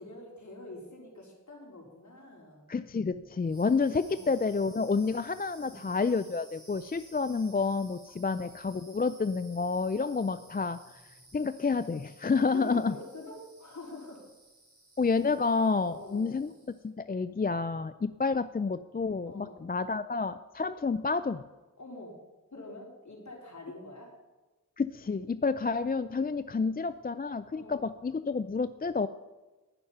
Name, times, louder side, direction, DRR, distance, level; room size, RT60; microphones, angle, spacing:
voice 1, 0.0-2.7 4.1-4.3 5.6-5.9 8.1-8.3 12.4-14.2 15.8-16.4 19.2-19.7 21.8-22.2 22.5-24.1 26.5-26.7 27.5-27.9, left 2 dB, 60° left, -2 dB, 4.2 m, -45 dB
voice 2, 2.7-10.8 11.3-13.0 15.0-16.5 16.8-21.4 24.8-29.1, left 4 dB, 30° left, 12 dB, 0.4 m, -29 dB
sound 1, 3.4-16.9, right 2 dB, 45° right, 3.5 m, -57 dB
11.0 x 10.5 x 5.6 m, 1.2 s
wide cardioid pair, 65°, 32 cm